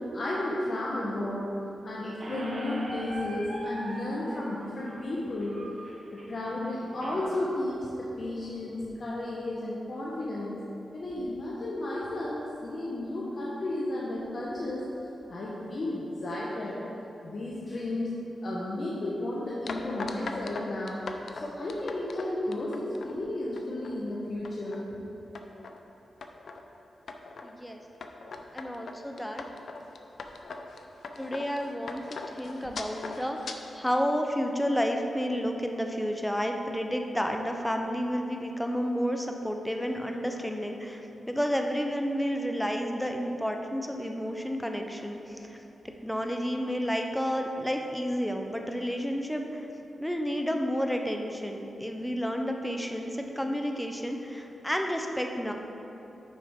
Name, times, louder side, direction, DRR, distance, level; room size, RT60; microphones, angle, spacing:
voice 1, 0.1-1.5 1.8-5.6 6.1-10.6 10.9-14.8 15.3-16.8 17.2-18.1 18.4-21.0 21.4-24.9, left 1 dB, 40° left, -6 dB, 0.9 m, -33 dB
Squeak, 2.2-7.2, right 1 dB, 40° right, 1.2 m, -41 dB
sound 1, 19.7-23.1 23.6-23.9 24.3-24.8 25.3-25.8 26.2-26.6 27.1-27.5 28.0-33.6, left 4 dB, 55° left, 0.5 m, -40 dB
voice 2, 27.4-27.8 28.5-29.4 31.2-41.0 41.3-45.6 46.0-49.7 50.0-55.5, equal, 5° left, 3 dB, 0.5 m, -31 dB
9.4 x 6.4 x 3.5 m, 2.9 s
wide cardioid pair, 180°, 0 cm